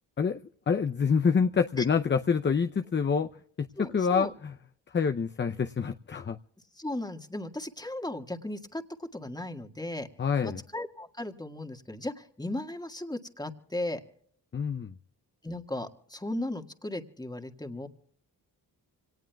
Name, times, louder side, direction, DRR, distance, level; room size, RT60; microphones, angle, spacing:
voice 1, 0.7-3.3 3.6-4.5 4.9-6.4 10.2-10.6 14.5-15.0, left 6 dB, 25° left, 0.6 m, -27 dB
voice 2, 3.8-4.3 6.7-10.1 10.4-14.0 15.4-17.9, left 1 dB, 10° left, 1.7 m, -36 dB
26.0 x 18.5 x 2.3 m
supercardioid pair, 45°, 41 cm